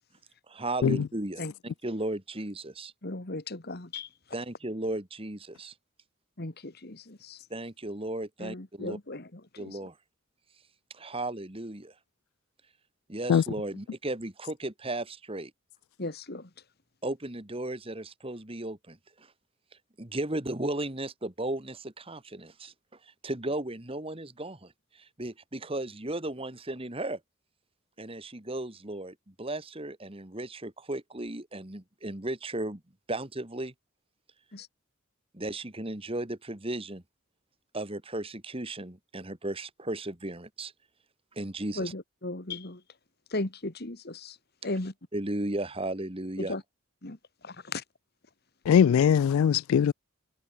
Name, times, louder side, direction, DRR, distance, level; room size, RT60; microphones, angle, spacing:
voice 1, 0.5-2.9 4.3-5.7 7.5-9.0 9.6-10.0 10.9-11.9 13.1-15.5 17.0-19.3 20.0-22.7 23.2-27.2 28.0-32.8 33.1-33.7 35.3-37.0 37.7-40.7 41.4-41.9 45.1-46.5, right 1 dB, 25° right, 1.9 m, -35 dB
voice 2, 3.0-4.1 6.4-7.4 8.4-9.8 16.0-16.5 34.5-34.7 41.8-42.8 43.3-44.4 44.6-44.9 46.4-46.6 47.0-47.2 47.4-47.8, left 2 dB, 50° left, 1.9 m, -36 dB
voice 3, 48.7-49.9, left 8 dB, 80° left, 0.3 m, -21 dB
head